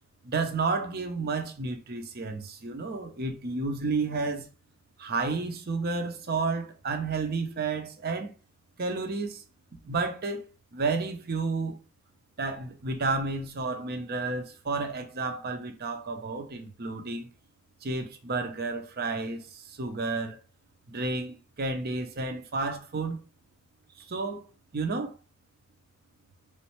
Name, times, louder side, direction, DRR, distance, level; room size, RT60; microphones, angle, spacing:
voice 1, 0.2-4.5 5.0-8.3 8.8-9.4 9.8-10.5 10.7-11.7 12.4-17.3 17.8-20.4 20.9-23.2 24.0-24.5 24.7-25.1, right 3 dB, 45° right, 0.6 m, -31 dB
3.9 x 3.1 x 3.0 m
head